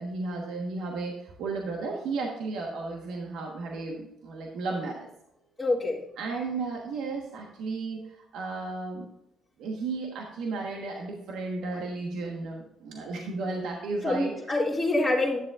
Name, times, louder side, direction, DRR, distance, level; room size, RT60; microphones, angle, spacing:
voice 1, 0.0-5.1 6.2-9.1 9.6-14.3, right 3 dB, 80° right, 0 dB, 1.2 m, -34 dB
voice 2, 5.6-6.0 14.0-15.4, left 2 dB, 5° left, -8 dB, 2.0 m, -26 dB
10.5 x 7.2 x 2.4 m, 0.87 s
supercardioid pair, 75°, 0 cm